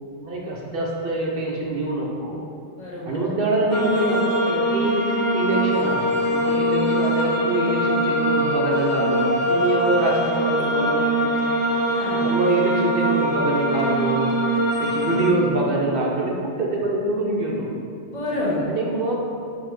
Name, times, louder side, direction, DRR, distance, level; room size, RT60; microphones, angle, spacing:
voice 1, 0.2-2.4 3.1-5.1 5.3-11.3 12.2-14.3 14.8-17.7 18.7-19.1, right 2 dB, 60° right, -2 dB, 0.7 m, -25 dB
voice 2, 2.8-3.3 11.7-12.2 15.2-15.7 18.0-18.6, left 1 dB, 85° left, -6 dB, 1.4 m, -30 dB
sound 1, 3.7-15.3, equal, 50° left, 0.6 m, -22 dB
6.1 x 2.7 x 3.0 m, 2.5 s
omnidirectional pair, 1.2 m